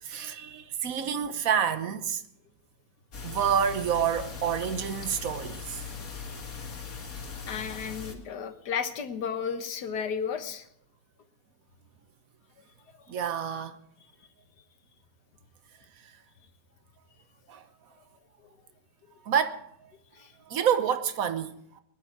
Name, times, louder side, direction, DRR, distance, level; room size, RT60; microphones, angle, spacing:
voice 1, 0.0-2.2 3.2-5.8 13.1-13.8 17.5-17.6 19.2-19.6 20.5-21.8, right 8 dB, 60° right, 1.3 m, -28 dB
sound 1, 3.1-8.1, left 5 dB, 55° left, 2.3 m, -39 dB
voice 2, 7.5-10.7 13.0-13.1 20.1-20.3, left 7 dB, 70° left, 1.7 m, -33 dB
20.5 x 11.0 x 4.6 m
omnidirectional pair, 1.8 m